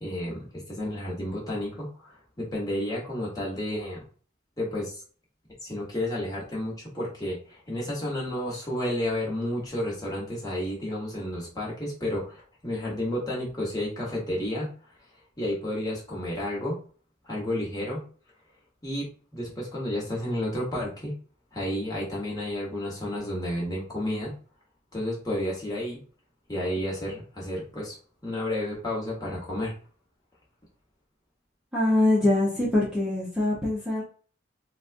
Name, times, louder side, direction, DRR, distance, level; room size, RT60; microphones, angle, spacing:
voice 1, 0.0-4.0 4.6-5.0 5.6-14.7 15.4-16.8 17.2-18.0 18.8-21.1 21.5-24.3 24.9-26.0 26.5-27.9 28.2-29.7, left 1 dB, 20° left, -5 dB, 1.2 m, -31 dB
voice 2, 31.7-34.0, left 2 dB, 5° right, -8 dB, 0.8 m, -23 dB
4.0 x 2.3 x 2.5 m, 0.41 s
head